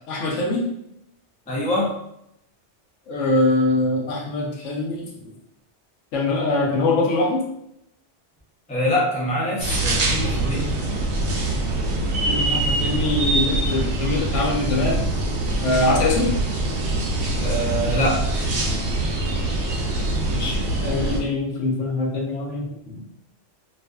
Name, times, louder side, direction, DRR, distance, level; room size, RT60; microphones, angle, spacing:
voice 1, 0.1-0.6 3.1-5.1 6.1-7.4 12.3-15.0 15.6-16.3 20.3-23.0, left 2 dB, 85° left, -1 dB, 1.0 m, -23 dB
voice 2, 1.5-2.0 8.7-10.7 17.4-18.2, equal, 10° left, -5 dB, 0.4 m, -24 dB
sound 1, 9.6-21.2, right 2 dB, 75° right, 0.9 m, -24 dB
2.5 x 2.4 x 2.2 m, 0.76 s
omnidirectional pair, 1.2 m